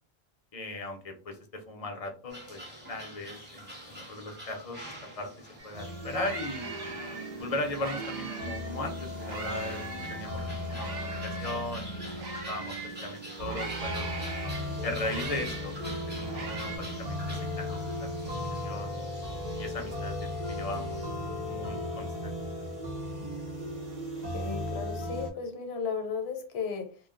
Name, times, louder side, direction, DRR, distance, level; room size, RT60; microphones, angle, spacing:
voice 1, 0.5-2.6 2.9-4.8 5.2-6.7 7.3-9.8 10.1-12.7 13.0-14.2 14.8-17.8 18.2-19.1 19.6-21.0 21.4-22.7, left 2 dB, 45° left, 4 dB, 0.6 m, -38 dB
sound 1, 2.3-21.1, equal, 10° right, 0.8 m, -47 dB
sound 2, 5.6-5.7 5.9-8.7 9.2-13.0 13.4-16.8, right 3 dB, 85° right, 0.9 m, -41 dB
sound 3, 5.7-25.3, left 1 dB, 45° right, 0.7 m, -36 dB
voice 2, 24.3-27.0, left 5 dB, 85° left, 5 dB, 0.9 m, -35 dB
2.2 x 2.1 x 3.6 m, 0.37 s
omnidirectional pair, 1.0 m